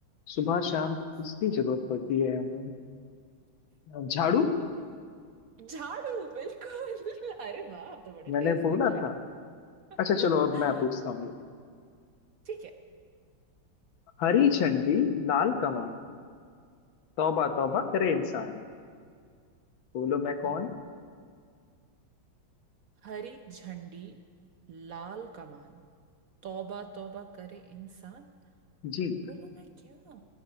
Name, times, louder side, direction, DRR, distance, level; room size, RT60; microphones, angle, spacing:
voice 1, 0.3-1.0 1.2-2.7 3.9-4.5 8.3-9.2 10.0-11.3 14.2-16.0 17.2-18.6 19.9-20.7 28.8-29.2, left 7 dB, 80° left, 8 dB, 1.8 m, -27 dB
voice 2, 4.2-4.6 5.6-9.1 9.9-10.9 12.4-12.8 20.4-20.6 23.0-24.2 24.7-25.8 26.4-28.3 29.3-30.2, right 6 dB, 60° right, 6 dB, 1.0 m, -41 dB
19.0 x 13.5 x 5.6 m, 2.1 s
omnidirectional pair, 2.1 m